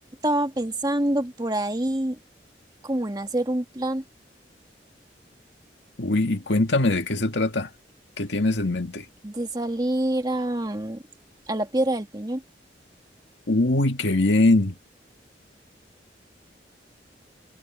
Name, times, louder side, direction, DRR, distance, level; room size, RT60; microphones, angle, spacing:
voice 1, 0.2-2.2 2.8-4.0 9.2-11.0 11.5-12.4, right 1 dB, 20° right, 1.8 m, -26 dB
voice 2, 6.0-7.7 8.2-9.1 13.5-14.8, left 2 dB, 85° left, 2.1 m, -22 dB
head